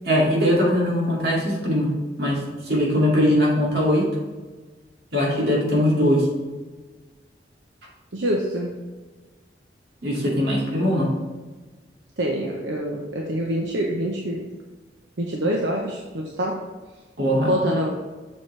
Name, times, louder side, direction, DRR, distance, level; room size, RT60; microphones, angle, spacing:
voice 1, 0.1-1.9 2.2-4.1 5.1-6.3 10.0-11.1 17.2-17.5, equal, 60° right, -4 dB, 2.4 m, -21 dB
voice 2, 8.1-8.7 12.2-14.5 15.2-16.5 17.4-18.0, equal, 80° right, -1 dB, 0.9 m, -25 dB
7.1 x 6.4 x 3.3 m, 1.3 s
head